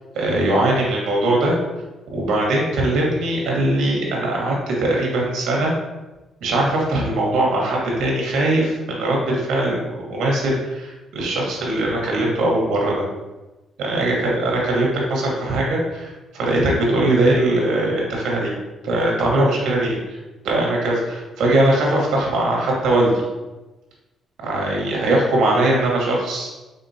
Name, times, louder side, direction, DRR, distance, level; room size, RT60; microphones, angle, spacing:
voice 1, 0.1-1.6 2.1-5.7 6.4-13.1 13.8-18.5 18.8-20.2 20.4-23.2 24.4-26.5, right 1 dB, 80° right, -2 dB, 1.2 m, -20 dB
4.4 x 3.9 x 2.7 m, 1.1 s
cardioid pair, 90°, 0 cm